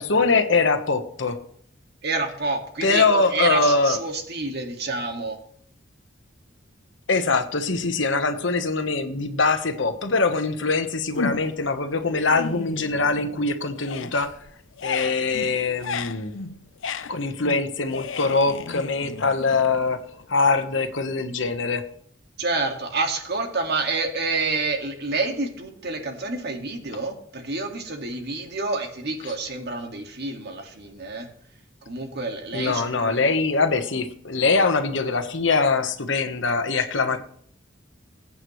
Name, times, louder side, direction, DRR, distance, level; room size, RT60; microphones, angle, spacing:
voice 1, 0.0-1.4 2.8-4.0 7.1-14.3 14.8-16.3 17.1-20.0 20.3-21.8 29.2-29.3 32.5-37.2, left 3 dB, 70° left, 7 dB, 1.2 m, -23 dB
voice 2, 2.0-5.4 22.4-31.3 31.9-33.3, right 3 dB, 60° right, 4 dB, 2.0 m, -28 dB
sound 1, 11.2-11.7 12.1-13.5 13.7-20.3, left 4 dB, 85° left, 0.6 m, -34 dB
21.5 x 8.7 x 3.2 m, 0.62 s
head